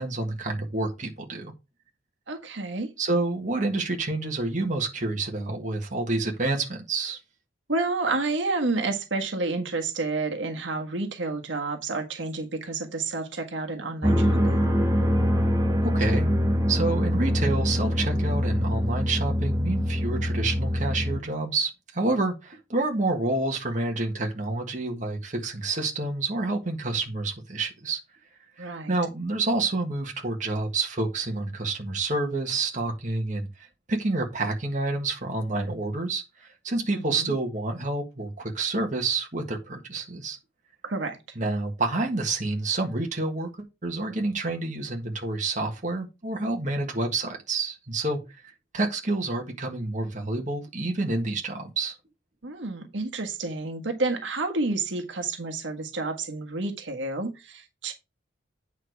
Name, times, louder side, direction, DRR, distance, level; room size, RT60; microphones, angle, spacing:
voice 1, 0.0-1.5 3.0-7.2 15.8-16.3 16.7-28.0 28.6-40.4 41.3-48.2 48.4-51.9, right 2 dB, 40° right, 1.7 m, -28 dB
voice 2, 2.3-2.9 7.7-14.7 28.6-28.9 36.9-37.3 40.8-41.2 52.4-57.9, right 3 dB, 75° right, 1.5 m, -30 dB
sound 1, 14.0-21.2, equal, 20° right, 1.3 m, -24 dB
9.0 x 4.8 x 4.7 m
head